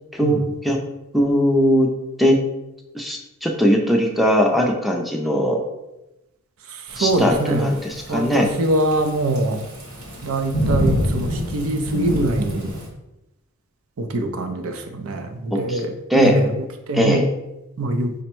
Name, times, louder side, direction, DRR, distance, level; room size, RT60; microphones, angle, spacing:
voice 1, 0.1-0.8 1.1-1.9 2.2-2.4 2.9-5.6 7.0-8.5 15.5-15.8 16.1-16.3 16.9-17.2, equal, ahead, 1 dB, 0.4 m, -19 dB
voice 2, 6.7-7.7 8.1-9.7 10.2-12.7 14.0-16.6 16.9-17.2 17.8-18.1, right 1 dB, 70° right, 6 dB, 0.5 m, -23 dB
Thunderstorm / Rain, 6.9-12.9, equal, 85° right, 1.0 m, -26 dB
5.0 x 2.1 x 4.4 m, 0.94 s
head